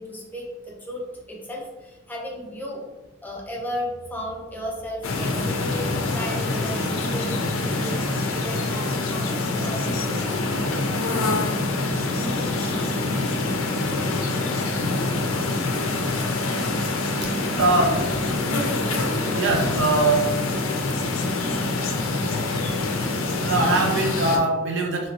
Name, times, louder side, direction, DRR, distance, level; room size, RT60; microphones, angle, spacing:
voice 1, 0.0-2.8 3.2-10.4, equal, 10° left, -3 dB, 0.5 m, -35 dB
sound 1, 5.0-24.4, left 2 dB, 75° left, 0.5 m, -25 dB
voice 2, 17.6-18.1 19.3-20.3 22.5-22.7 23.4-25.1, right 2 dB, 60° right, 1 dB, 0.6 m, -22 dB
2.9 x 2.7 x 2.8 m, 1.1 s
head